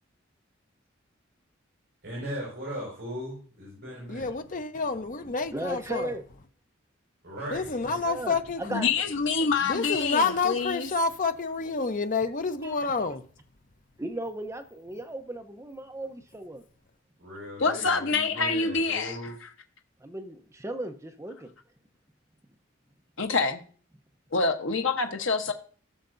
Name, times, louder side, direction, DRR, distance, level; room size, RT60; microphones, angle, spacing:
voice 1, 2.0-4.3 7.2-8.0 17.2-19.3, equal, 55° right, 4.9 m, -38 dB
voice 2, 4.1-6.1 7.5-8.8 9.6-13.2, left 4 dB, 40° left, 0.7 m, -29 dB
voice 3, 5.5-6.2 8.0-8.9 12.6-12.8 14.0-16.6 20.0-21.5, right 1 dB, 15° right, 0.7 m, -36 dB
voice 4, 8.7-10.9 17.6-19.2 23.2-23.6 24.3-25.5, left 4 dB, 70° left, 1.0 m, -26 dB
14.5 x 6.6 x 2.6 m
head